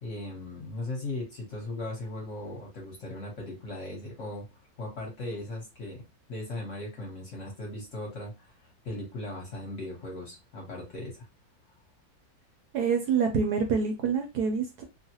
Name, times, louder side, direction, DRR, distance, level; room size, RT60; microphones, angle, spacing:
voice 1, 0.0-4.5 4.8-6.0 6.3-11.2, left 2 dB, 50° left, -1 dB, 1.2 m, -38 dB
voice 2, 12.7-14.8, right 6 dB, 70° right, 3 dB, 1.0 m, -26 dB
3.1 x 2.1 x 2.8 m, 0.25 s
omnidirectional pair, 2.0 m